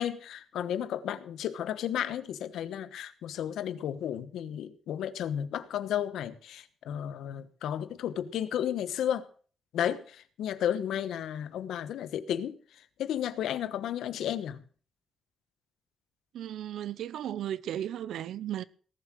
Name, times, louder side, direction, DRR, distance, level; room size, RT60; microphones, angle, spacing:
voice 1, 0.0-9.3 9.7-12.6 13.0-14.6, left 10 dB, 90° left, 1.2 m, -33 dB
voice 2, 16.3-18.6, right 11 dB, 75° right, 0.8 m, -35 dB
18.5 x 7.7 x 6.2 m
wide cardioid pair, 175°, 0 cm